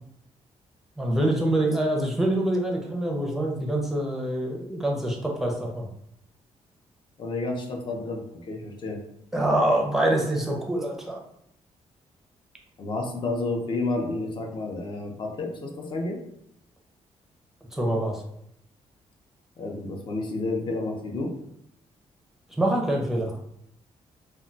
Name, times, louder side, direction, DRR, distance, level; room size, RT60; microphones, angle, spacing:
voice 1, 1.0-5.9 9.3-11.2 17.7-18.2 22.6-23.3, right 1 dB, 5° right, -1 dB, 0.5 m, -25 dB
voice 2, 7.2-9.0 12.8-16.2 19.6-21.3 23.1-23.2, left 2 dB, 45° left, 1 dB, 0.5 m, -30 dB
2.2 x 2.1 x 3.8 m, 0.74 s
cardioid pair, 150°, 12 cm